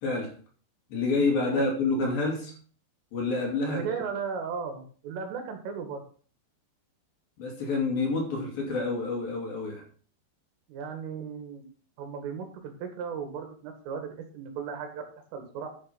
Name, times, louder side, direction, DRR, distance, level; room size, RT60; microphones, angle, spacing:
voice 1, 0.0-0.4 0.9-2.5 3.1-3.8 7.4-9.8, left 3 dB, 50° left, 0 dB, 3.8 m, -28 dB
voice 2, 3.7-6.0 10.7-11.7 12.0-15.0 15.3-15.7, right 6 dB, 75° right, 5 dB, 4.4 m, -36 dB
11.0 x 6.6 x 5.8 m, 0.42 s
omnidirectional pair, 5.9 m